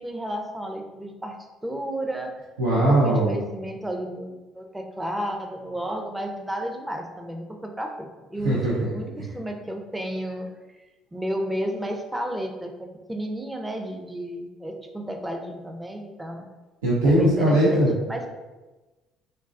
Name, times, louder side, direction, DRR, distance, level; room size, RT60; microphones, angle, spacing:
voice 1, 0.0-1.4 1.6-2.3 2.7-10.8 11.1-12.7 13.1-16.5 17.0-17.8 18.1-18.3, right 1 dB, 10° right, 3 dB, 0.5 m, -32 dB
voice 2, 2.6-3.4 8.4-8.7 16.8-17.9, right 1 dB, 85° right, -7 dB, 0.6 m, -19 dB
3.9 x 2.2 x 2.5 m, 1.2 s
hypercardioid pair, 55°, 0 cm